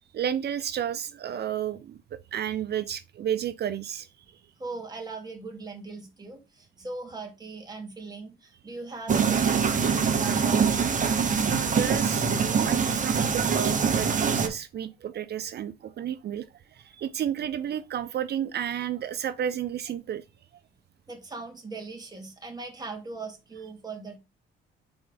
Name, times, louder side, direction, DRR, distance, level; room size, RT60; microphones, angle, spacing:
voice 1, 0.1-4.4 11.5-20.2, right 9 dB, 55° right, 0.6 m, -32 dB
voice 2, 4.6-10.7 21.1-24.2, right 3 dB, 20° right, 2.7 m, -39 dB
sound 1, 9.1-14.5, right 6 dB, 40° right, 1.5 m, -24 dB
5.7 x 4.4 x 3.9 m
cardioid pair, 90°, 20 cm